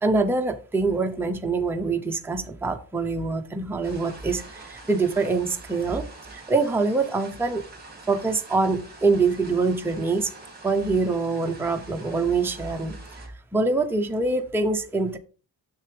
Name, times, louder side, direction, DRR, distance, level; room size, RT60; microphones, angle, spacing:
voice 1, 0.0-7.6 8.1-10.3 10.6-12.9 13.5-15.2, right 3 dB, 5° right, 5 dB, 0.5 m, -24 dB
sound 1, 3.8-13.3, right 3 dB, 20° right, 1.9 m, -46 dB
6.8 x 6.5 x 3.2 m, 0.37 s
wide cardioid pair, 160°, 45 cm